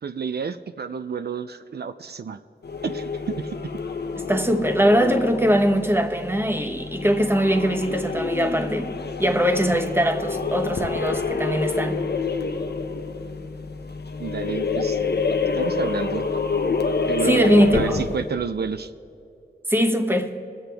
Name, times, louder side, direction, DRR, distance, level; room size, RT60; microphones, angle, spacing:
voice 1, 0.0-2.4 2.8-3.7 14.2-15.0 15.6-16.3 17.1-18.9, right 6 dB, 75° right, 0.4 m, -30 dB
sound 1, 2.6-18.3, left 4 dB, 80° left, 0.6 m, -28 dB
sound 2, 4.2-4.4 4.8-5.3 6.0-6.1 6.5-9.0, left 1 dB, 35° left, 0.9 m, -33 dB
voice 2, 4.3-8.9 9.2-12.0 17.2-18.0 19.7-20.4, equal, 15° right, 1.0 m, -21 dB
23.0 x 7.8 x 3.4 m
wide cardioid pair, 55°, 17 cm